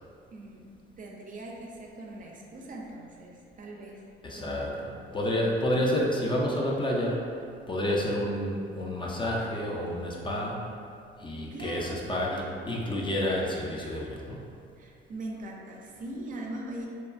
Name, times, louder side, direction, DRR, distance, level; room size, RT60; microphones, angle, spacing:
voice 1, 0.3-0.6 1.0-4.0 4.4-4.9 11.5-12.0 14.8-16.9, right 1 dB, 45° right, -1 dB, 0.4 m, -41 dB
voice 2, 4.2-7.4 7.7-10.8 11.2-14.4, left 1 dB, 25° left, -2 dB, 0.4 m, -29 dB
2.8 x 2.2 x 2.5 m, 2.4 s
cardioid pair, 90°, 20 cm